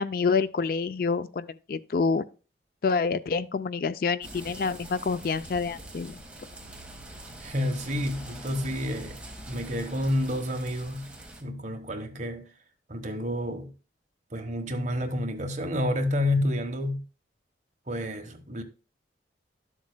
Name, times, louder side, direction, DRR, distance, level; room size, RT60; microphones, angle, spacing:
voice 1, 0.0-2.3 2.8-6.2, left 4 dB, 55° left, 0.4 m, -27 dB
sound 1, 4.2-11.4, right 1 dB, 5° right, 1.4 m, -44 dB
voice 2, 7.4-9.2 9.5-11.1 11.4-12.4 12.9-13.7 14.3-17.0 17.9-18.6, left 1 dB, 40° right, 1.2 m, -29 dB
12.0 x 7.3 x 2.2 m
head